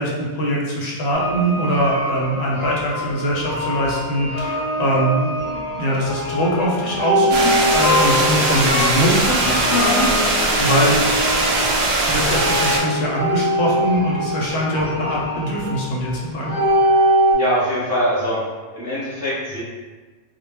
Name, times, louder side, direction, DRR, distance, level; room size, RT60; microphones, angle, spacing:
voice 1, 0.0-11.0 12.1-16.6, equal, 70° left, -4 dB, 0.8 m, -22 dB
sound 1, 1.1-17.3, equal, 30° left, 0.4 m, -23 dB
sound 2, 7.3-12.8, right 2 dB, 70° right, 0.8 m, -20 dB
voice 2, 17.3-18.4 18.7-19.6, equal, 15° right, -10 dB, 0.6 m, -22 dB
2.2 x 2.0 x 3.2 m, 1.3 s
omnidirectional pair, 1.2 m